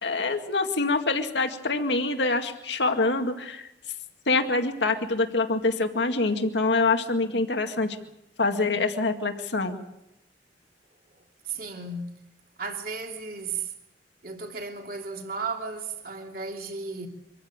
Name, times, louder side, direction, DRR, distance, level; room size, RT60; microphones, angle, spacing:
voice 1, 0.0-3.7 4.3-8.0 8.4-9.8, left 3 dB, 80° left, 2.1 m, -25 dB
voice 2, 11.1-12.2 12.6-13.7 14.2-17.1, right 4 dB, 55° right, 3.2 m, -35 dB
25.0 x 15.0 x 8.9 m
head